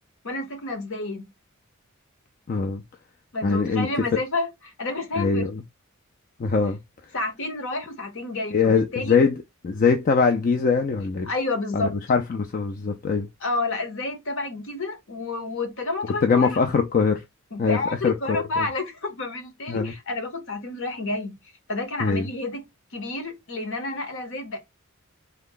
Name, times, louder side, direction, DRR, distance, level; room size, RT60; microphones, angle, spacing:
voice 1, 0.2-1.3 3.3-4.5 4.8-5.5 7.1-9.2 11.2-11.9 13.4-16.6 17.5-21.4 21.7-22.6 22.9-24.6, left 2 dB, 65° left, 0.9 m, -30 dB
voice 2, 2.5-2.8 3.4-4.1 5.2-5.6 6.4-6.8 8.5-11.3 11.7-13.3 16.2-17.2 17.6-18.4 19.7-19.9 22.0-22.3, left 5 dB, 40° left, 0.4 m, -22 dB
3.3 x 2.1 x 3.7 m
head